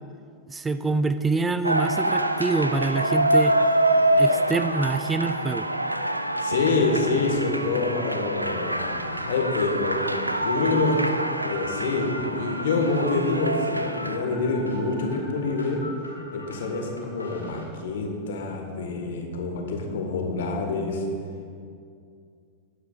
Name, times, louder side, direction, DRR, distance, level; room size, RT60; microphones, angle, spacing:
voice 1, 0.5-3.5 4.2-5.7, right 3 dB, 15° right, 11 dB, 0.4 m, -26 dB
sound 1, 1.6-14.2, right 1 dB, 85° right, 0.4 m, -25 dB
voice 2, 6.4-10.0 10.4-10.9 11.4-15.8 16.3-21.0, left 3 dB, 60° left, 3 dB, 1.6 m, -26 dB
sound 2, 8.4-17.7, left 1 dB, 85° left, 1.7 m, -41 dB
19.5 x 9.0 x 2.5 m, 2.3 s
figure-of-eight pair, 90°, 0 cm